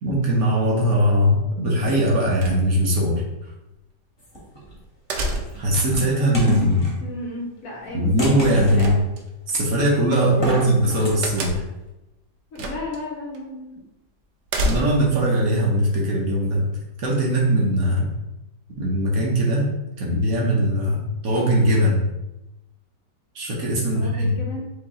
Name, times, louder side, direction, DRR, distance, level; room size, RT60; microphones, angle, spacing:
voice 1, 0.0-3.2 5.6-6.9 7.9-9.0 9.5-11.6 14.6-16.7 17.0-18.1 18.8-19.7 20.0-22.1 23.3-24.3, equal, 60° right, -3 dB, 1.3 m, -20 dB
sound 1, 2.4-3.0 5.1-5.8 8.8-9.5 11.2-11.8 12.6-13.0 13.3-13.4 14.5-15.2, right 1 dB, 75° right, 1.2 m, -28 dB
sound 2, 4.2-4.8 5.5-6.9 8.2-9.0 10.3-11.1, equal, 15° left, 1.0 m, -29 dB
voice 2, 7.0-8.1 8.6-9.1 10.4-10.7 12.5-13.8 23.9-24.7, left 1 dB, 60° left, -2 dB, 1.0 m, -33 dB
5.1 x 2.7 x 3.6 m, 0.96 s
omnidirectional pair, 1.9 m